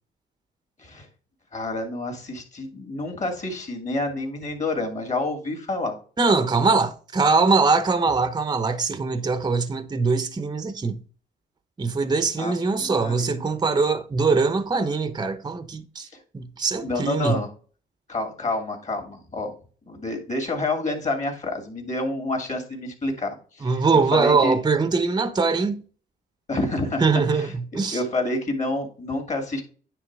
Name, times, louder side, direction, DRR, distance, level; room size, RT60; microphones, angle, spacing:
voice 1, 1.5-6.0 12.4-13.4 16.8-17.5 18.1-19.5 19.9-24.6 26.5-27.0 27.3-29.6, left 2 dB, 35° left, 2.7 m, -28 dB
voice 2, 6.2-11.0 11.8-16.1 16.3-17.4 23.6-25.8 27.0-28.0, right 4 dB, 20° right, 0.8 m, -22 dB
9.6 x 3.3 x 4.7 m
cardioid pair, 90°, 20 cm